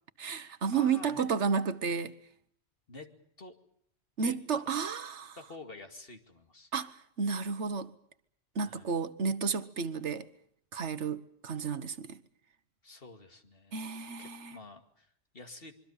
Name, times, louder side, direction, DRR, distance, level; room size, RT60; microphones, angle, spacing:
voice 1, 0.2-2.1 4.2-5.4 6.7-7.9 8.5-10.3 10.7-12.2 13.7-14.6, right 5 dB, 85° right, 1.5 m, -32 dB
voice 2, 0.7-1.3 2.9-3.1 3.4-3.6 4.2-4.4 5.3-6.7 8.6-8.9 12.8-15.7, left 3 dB, 55° left, 2.6 m, -49 dB
25.5 x 23.5 x 7.2 m
omnidirectional pair, 1.2 m